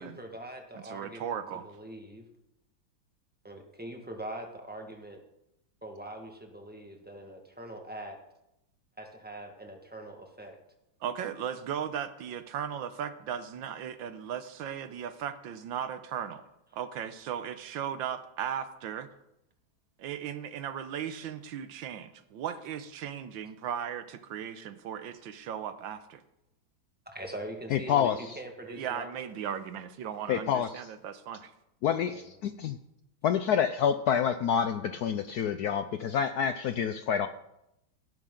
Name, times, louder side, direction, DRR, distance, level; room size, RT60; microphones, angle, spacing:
voice 1, 0.0-1.4 1.6-2.3 3.4-5.2 5.8-8.2 9.0-10.5 27.0-29.3 31.8-32.4, right 1 dB, 5° right, 3 dB, 1.4 m, -43 dB
voice 2, 0.7-1.7 11.0-16.4 16.7-19.1 20.0-26.2 28.6-31.5, right 8 dB, 80° right, 11 dB, 1.6 m, -37 dB
voice 3, 27.7-28.4 30.3-30.7 31.8-32.8 33.2-35.9 36.1-37.3, left 8 dB, 70° left, 10 dB, 0.9 m, -27 dB
17.5 x 11.0 x 3.8 m, 0.85 s
omnidirectional pair, 2.1 m